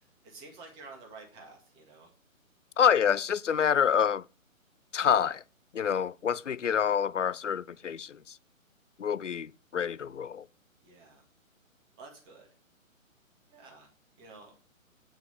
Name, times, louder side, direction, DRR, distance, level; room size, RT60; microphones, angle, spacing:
voice 1, 0.0-2.1 10.8-11.3 12.0-12.5 13.5-13.9 14.2-14.5, right 3 dB, 10° right, 1.6 m, -50 dB
voice 2, 2.8-4.2 4.9-5.4 5.7-8.4 9.0-10.5, left 8 dB, 60° left, 0.5 m, -27 dB
8.9 x 4.7 x 7.3 m
figure-of-eight pair, 140°, 41 cm